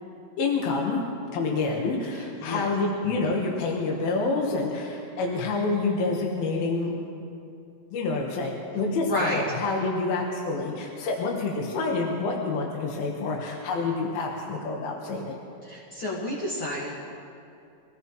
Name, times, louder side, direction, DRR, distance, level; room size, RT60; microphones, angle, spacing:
voice 1, 0.4-1.0 1.3-7.2 7.9-15.4, left 3 dB, 75° left, -1 dB, 3.1 m, -28 dB
voice 2, 2.1-2.7 9.0-9.4 15.6-17.1, left 1 dB, 45° left, -6 dB, 1.9 m, -30 dB
26.0 x 17.0 x 3.1 m, 2.6 s
omnidirectional pair, 4.3 m